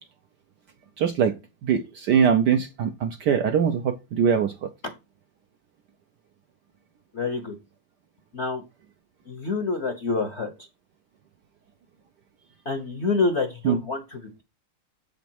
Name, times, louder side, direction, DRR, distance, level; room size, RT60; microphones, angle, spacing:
voice 1, 1.0-1.3 1.6-4.7 13.6-13.8, right 7 dB, 70° right, 1.0 m, -22 dB
voice 2, 7.1-7.5 8.3-8.6 9.3-10.5 12.7-14.4, left 3 dB, 50° left, 0.8 m, -27 dB
7.7 x 5.1 x 4.5 m
omnidirectional pair, 2.4 m